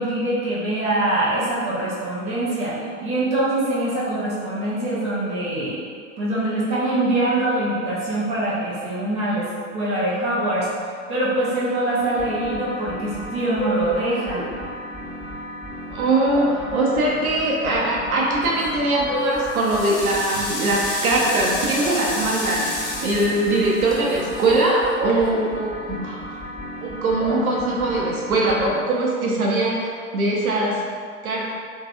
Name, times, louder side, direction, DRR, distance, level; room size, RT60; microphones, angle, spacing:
voice 1, 0.0-2.8 3.0-5.8 6.2-10.7 11.1-14.4, right 1 dB, 20° right, -8 dB, 0.3 m, -23 dB
sound 1, 12.0-28.8, equal, 5° left, 0.8 m, -33 dB
voice 2, 15.9-26.2 26.8-30.8 31.2-31.5, right 2 dB, 90° right, -3 dB, 0.6 m, -21 dB
sound 2, 18.4-18.8 19.3-25.6, left 1 dB, 80° left, 0.7 m, -32 dB
2.6 x 2.2 x 2.4 m, 2.1 s
hypercardioid pair, 100°, 42 cm